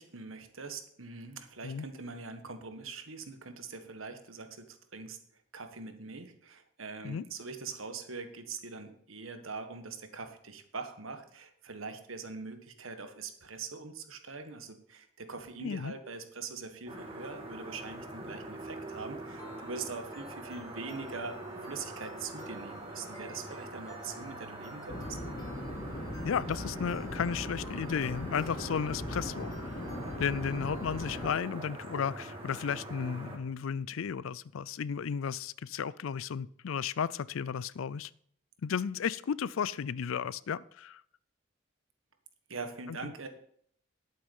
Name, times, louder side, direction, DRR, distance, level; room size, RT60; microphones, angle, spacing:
voice 1, 0.0-5.2 5.5-25.2 42.5-43.3, right 4 dB, 90° right, 7 dB, 1.5 m, -43 dB
voice 2, 15.6-15.9 26.2-29.5 30.2-38.1 38.6-41.0, left 7 dB, 85° left, 21 dB, 0.4 m, -34 dB
sound 1, 16.9-33.4, right 2 dB, 25° right, 1.8 m, -44 dB
sound 2, 19.4-31.4, left 3 dB, 15° left, 2.0 m, -54 dB
sound 3, 24.9-31.3, left 1 dB, 40° left, 1.1 m, -40 dB
11.0 x 8.6 x 5.5 m, 0.64 s
head